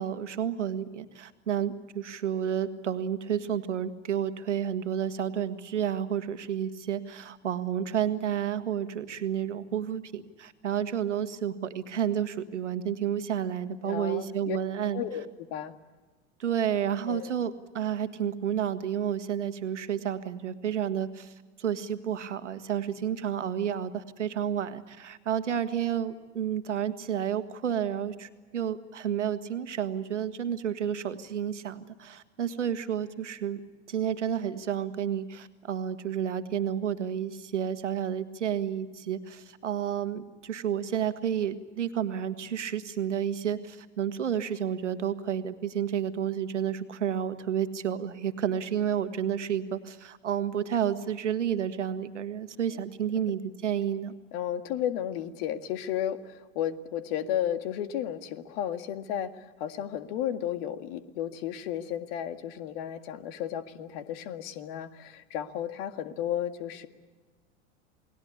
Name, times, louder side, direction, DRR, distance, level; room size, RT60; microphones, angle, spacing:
voice 1, 0.0-15.0 16.4-33.6 33.9-54.1, right 9 dB, 80° right, 10 dB, 1.8 m, -31 dB
voice 2, 13.8-14.6 14.9-15.7 17.1-17.3 54.3-66.9, left 10 dB, 55° left, 10 dB, 1.9 m, -33 dB
28.5 x 20.0 x 8.5 m, 1.3 s
figure-of-eight pair, 85°, 36 cm